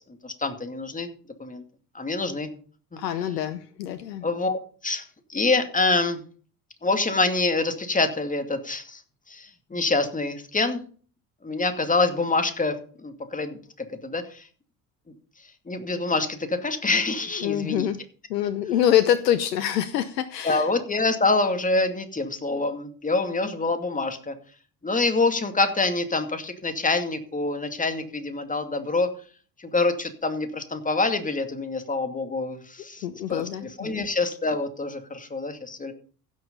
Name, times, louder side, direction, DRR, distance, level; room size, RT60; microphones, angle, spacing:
voice 1, 0.2-1.1 1.4-1.6 1.9-2.5 4.2-5.0 5.3-6.2 6.8-9.0 9.3-10.8 11.4-14.4 15.7-17.9 20.4-24.3 24.8-29.1 29.6-35.9, left 3 dB, 15° left, 8 dB, 2.3 m, -26 dB
voice 2, 3.0-4.3 17.4-18.0 18.3-20.7 33.0-34.0, left 11 dB, 80° left, 14 dB, 0.9 m, -25 dB
16.0 x 6.6 x 5.4 m, 0.42 s
hypercardioid pair, 65°, 48 cm